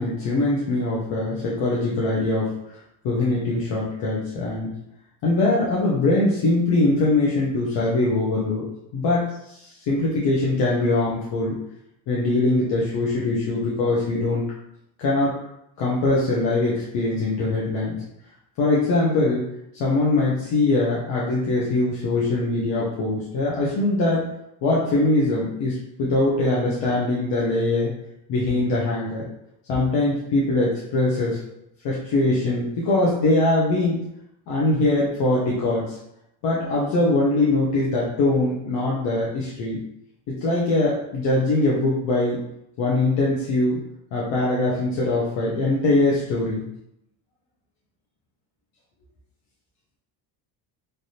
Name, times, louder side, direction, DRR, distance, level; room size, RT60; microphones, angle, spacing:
voice 1, 0.0-2.5 3.0-4.7 5.2-8.6 8.9-11.6 12.1-14.4 15.0-15.3 15.8-18.0 18.6-19.5 19.7-24.2 24.6-27.9 28.3-29.3 29.7-31.4 31.8-34.0 34.5-36.0 36.4-39.8 40.4-42.4 42.8-43.8 44.1-46.6, left 2 dB, 60° left, -5 dB, 0.8 m, -22 dB
3.3 x 2.7 x 2.7 m, 0.80 s
cardioid pair, 145°, 49 cm